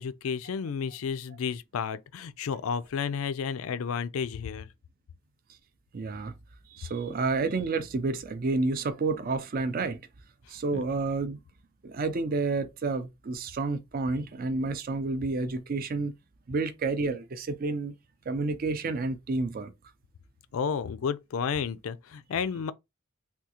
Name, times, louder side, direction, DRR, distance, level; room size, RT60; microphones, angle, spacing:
voice 1, 0.0-4.7 10.7-10.8 20.5-22.7, left 6 dB, 75° left, 0.4 m, -32 dB
voice 2, 5.9-6.4 6.7-10.0 10.5-11.4 11.8-16.1 16.5-17.9 18.3-19.7, right 3 dB, 45° right, 0.4 m, -30 dB
3.6 x 2.3 x 2.8 m
head